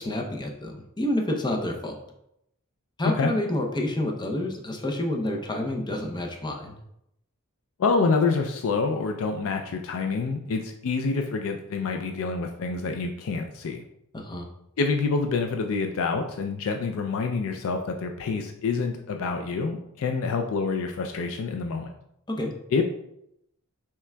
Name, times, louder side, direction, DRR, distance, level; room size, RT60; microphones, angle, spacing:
voice 1, 0.0-2.0 3.0-6.7 14.1-14.5 22.3-22.5, left 1 dB, 20° left, 2 dB, 0.6 m, -29 dB
voice 2, 7.8-13.8 14.8-21.9 22.7-22.8, left 4 dB, 65° left, 4 dB, 0.4 m, -27 dB
5.7 x 3.4 x 2.2 m, 0.79 s
head